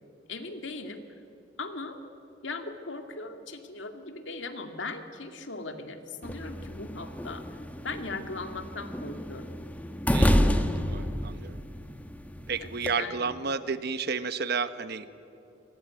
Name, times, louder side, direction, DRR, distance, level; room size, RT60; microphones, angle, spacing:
voice 1, 0.3-1.1 1.6-2.0 2.4-7.5 7.8-9.5 12.6-13.4, left 3 dB, 80° left, 6 dB, 2.3 m, -39 dB
sound 1, 6.2-12.9, equal, 10° left, 1.3 m, -29 dB
voice 2, 10.1-11.6 12.5-15.2, right 5 dB, 60° right, 12 dB, 1.2 m, -32 dB
27.5 x 21.5 x 9.1 m, 2.7 s
head